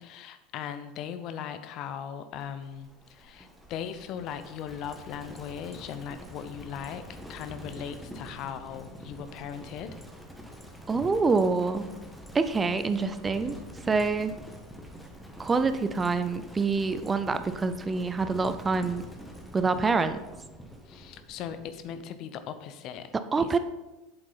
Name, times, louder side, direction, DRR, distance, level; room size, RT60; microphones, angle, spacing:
voice 1, 0.0-7.0 7.3-9.9 20.9-23.1 23.4-23.6, left 8 dB, 50° left, 11 dB, 0.7 m, -38 dB
Livestock farm animals working animals, 2.4-22.1, equal, ahead, 1.4 m, -46 dB
voice 2, 10.9-11.9 12.3-13.6 13.9-14.3 15.4-19.0 19.5-20.2 23.3-23.6, right 4 dB, 20° right, 11 dB, 0.6 m, -26 dB
7.9 x 7.5 x 4.0 m, 1.1 s
hypercardioid pair, 80°, 0 cm